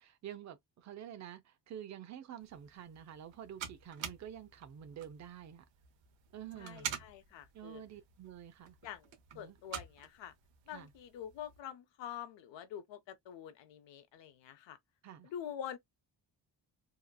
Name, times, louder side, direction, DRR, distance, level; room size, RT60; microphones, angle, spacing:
voice 1, 0.0-5.6 6.3-7.0 7.5-8.8 9.3-9.6 10.7-10.9 15.0-15.3, right 10 dB, 40° right, 0.5 m, -49 dB
sound 1, 2.4-11.6, right 9 dB, 85° right, 0.7 m, -48 dB
voice 2, 6.6-7.8 8.8-9.1 9.3-10.3 10.7-14.8 15.2-15.8, left 9 dB, 75° left, 0.7 m, -46 dB
2.8 x 2.4 x 2.2 m
cardioid pair, 150°, 44 cm